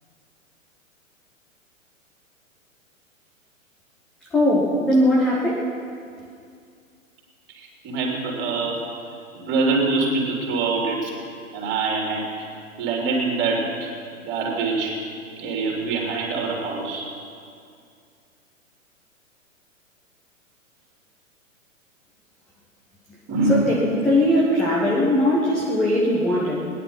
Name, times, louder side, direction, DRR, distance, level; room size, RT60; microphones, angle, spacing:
voice 1, 4.3-5.7 23.5-26.6, left 1 dB, ahead, -6 dB, 0.3 m, -20 dB
voice 2, 7.5-8.9 9.3-11.1 11.5-12.3 12.8-13.9 14.2-15.0 15.4-17.1 23.3-23.8, right 3 dB, 25° right, -1 dB, 3.5 m, -24 dB
20.0 x 10.5 x 5.9 m, 2.3 s
figure-of-eight pair, 110°, 41 cm